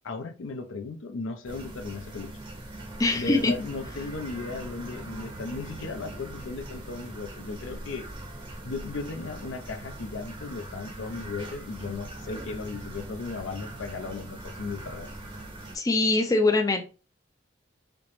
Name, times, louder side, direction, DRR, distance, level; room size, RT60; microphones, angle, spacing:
voice 1, 0.0-2.3 3.1-8.1 8.6-15.1, left 3 dB, 80° left, 0.5 m, -36 dB
sound 1, 1.4-15.8, right 1 dB, 25° right, 0.7 m, -41 dB
voice 2, 3.0-3.5 15.7-16.8, left 2 dB, 20° left, 0.3 m, -23 dB
5.1 x 2.0 x 3.0 m
head